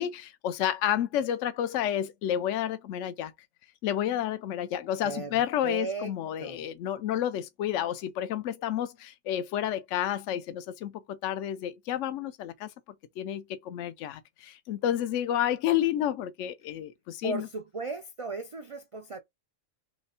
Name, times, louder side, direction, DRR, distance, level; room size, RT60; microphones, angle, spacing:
voice 1, 0.0-3.3 3.8-12.7 13.2-17.5, left 11 dB, 75° left, 0.9 m, -30 dB
voice 2, 5.0-6.1 6.4-6.7 17.2-19.2, right 3 dB, 60° right, 0.3 m, -36 dB
3.3 x 2.9 x 4.1 m
omnidirectional pair, 1.3 m